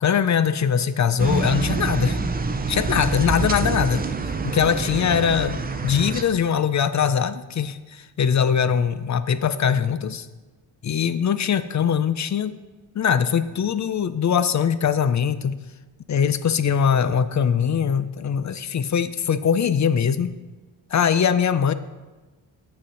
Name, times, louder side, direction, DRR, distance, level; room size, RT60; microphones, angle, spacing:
voice 1, 0.0-2.2 2.7-4.0 4.4-10.3 10.8-12.6 12.9-15.5 16.1-20.3 20.9-21.7, left 7 dB, 40° left, 13 dB, 0.4 m, -22 dB
sound 1, 1.2-6.2, right 3 dB, 20° right, 0.5 m, -26 dB
7.6 x 6.4 x 5.5 m, 1.2 s
wide cardioid pair, 110°, 47 cm